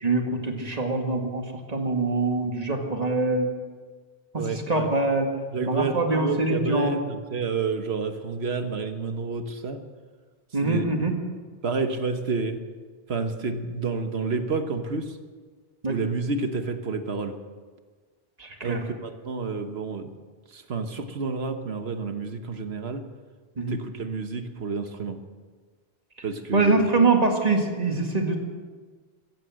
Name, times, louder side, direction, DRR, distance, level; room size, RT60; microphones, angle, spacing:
voice 1, 0.0-3.5 4.3-5.3 5.7-7.0 10.5-11.2 15.8-16.0 18.4-18.8 23.6-23.8 26.5-28.4, right 3 dB, 40° right, 3 dB, 2.0 m, -24 dB
voice 2, 4.4-4.9 5.5-9.8 10.6-11.0 11.6-12.6 13.1-15.1 15.9-17.3 18.6-20.1 20.5-23.0 23.7-25.2 26.2-26.8, right 4 dB, 75° right, 7 dB, 1.4 m, -29 dB
15.5 x 14.5 x 6.4 m, 1.5 s
omnidirectional pair, 1.1 m